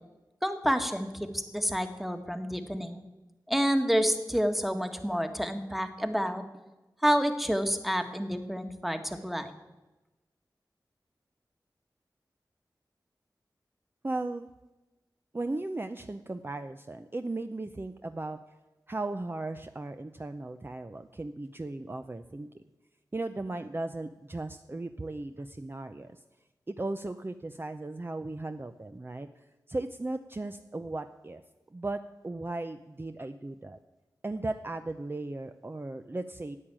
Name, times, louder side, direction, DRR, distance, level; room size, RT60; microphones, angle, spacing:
voice 1, 0.4-3.0 3.5-6.4 7.0-9.5, equal, ahead, 7 dB, 1.5 m, -29 dB
voice 2, 14.0-14.5 15.3-18.4 18.9-22.5 23.1-26.2 26.7-31.4 31.7-33.8 34.2-36.6, right 2 dB, 30° right, 8 dB, 0.6 m, -36 dB
11.0 x 8.8 x 8.8 m, 1.1 s
wide cardioid pair, 55°, 8 cm